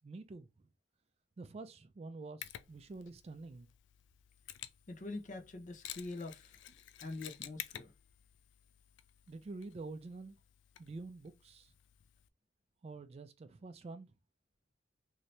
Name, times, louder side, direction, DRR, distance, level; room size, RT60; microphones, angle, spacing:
voice 1, 0.0-0.5 1.4-3.7 9.3-10.4 10.8-11.7 12.8-14.1, right 3 dB, 35° right, 0.3 m, -47 dB
Mechanisms, 2.4-12.3, left 12 dB, 70° left, 0.3 m, -52 dB
voice 2, 4.9-6.6 7.0-7.9, left 2 dB, 40° left, 0.7 m, -44 dB
2.7 x 2.7 x 3.2 m
head